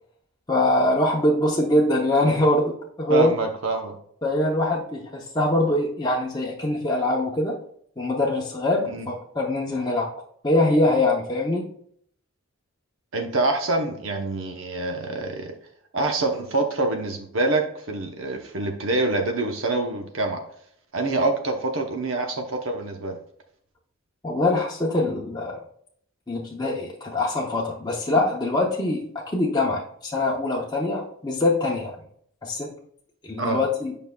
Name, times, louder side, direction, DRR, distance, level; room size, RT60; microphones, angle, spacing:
voice 1, 0.5-3.3 4.2-7.6 8.0-10.1 10.4-11.7 24.2-25.6 26.3-29.0 29.3-32.0 32.4-32.7 33.2-33.9, left 1 dB, 20° left, -3 dB, 0.7 m, -23 dB
voice 2, 3.1-3.9 8.9-9.1 13.1-15.5 15.9-20.4 20.9-23.2 33.4-33.6, right 2 dB, 65° right, 3 dB, 0.8 m, -26 dB
8.5 x 5.4 x 2.3 m, 0.64 s
head